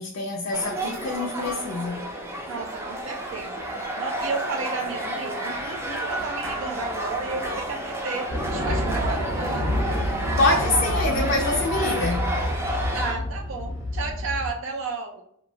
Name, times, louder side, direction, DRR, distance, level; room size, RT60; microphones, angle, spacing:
voice 1, 0.0-2.1 10.4-12.4, left 2 dB, 65° left, 0.4 m, -25 dB
sound 1, 0.5-13.1, right 1 dB, 15° right, 0.4 m, -30 dB
voice 2, 2.5-3.7 4.0-9.7 12.9-15.2, right 4 dB, 80° right, 0.4 m, -33 dB
sound 2, 8.3-14.5, left 1 dB, 90° left, 0.8 m, -28 dB
2.7 x 2.2 x 2.6 m
head